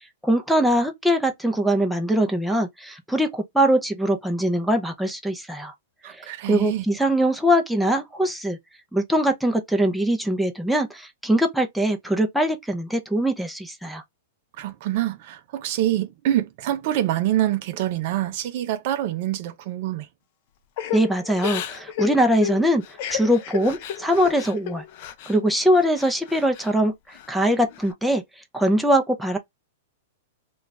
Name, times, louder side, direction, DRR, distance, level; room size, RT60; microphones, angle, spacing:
voice 1, 0.2-5.7 6.1-8.6 8.9-14.0 20.9-22.8 23.1-24.8 25.3-28.2 28.5-29.4, equal, ahead, 0.5 m, -22 dB
voice 2, 6.0-6.8 14.6-20.1, right 13 dB, 50° right, 0.4 m, -25 dB
Crying sobbing / Breathing, 20.8-25.4 25.7-26.7 27.1-27.9, left 9 dB, 50° left, 0.5 m, -32 dB
2.3 x 2.3 x 3.7 m
hypercardioid pair, 140°, 0 cm